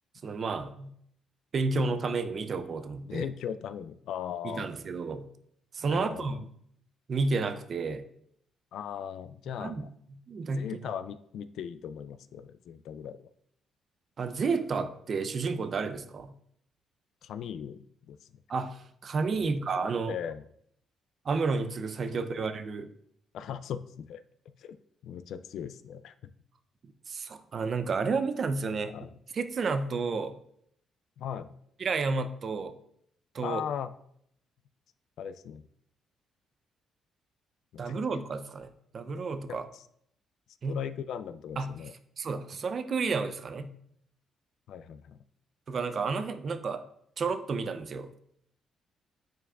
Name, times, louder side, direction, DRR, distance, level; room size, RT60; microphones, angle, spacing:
voice 1, 0.2-0.9 1.5-3.3 4.4-5.3 5.7-6.5 7.1-8.0 9.6-9.9 10.3-10.7 14.2-16.4 18.5-20.2 21.2-22.9 27.1-28.9 29.3-30.4 31.8-32.7 33.3-33.6 37.8-39.7 40.6-40.8 41.6-41.7 42.2-43.7 45.7-46.8 47.2-48.1, right 4 dB, 50° right, 10 dB, 0.5 m, -31 dB
voice 2, 3.0-4.7 5.8-6.3 8.7-9.9 10.6-13.2 17.2-18.2 19.3-19.5 20.1-20.4 23.3-24.2 24.6-24.8 25.0-26.1 28.8-29.1 31.2-31.5 33.4-33.9 35.2-35.6 37.7-37.9 39.5-39.8 40.7-41.9 44.7-45.2, left 8 dB, 75° left, 12 dB, 0.3 m, -38 dB
9.1 x 4.6 x 2.4 m, 0.70 s
cardioid pair, 90°, 0 cm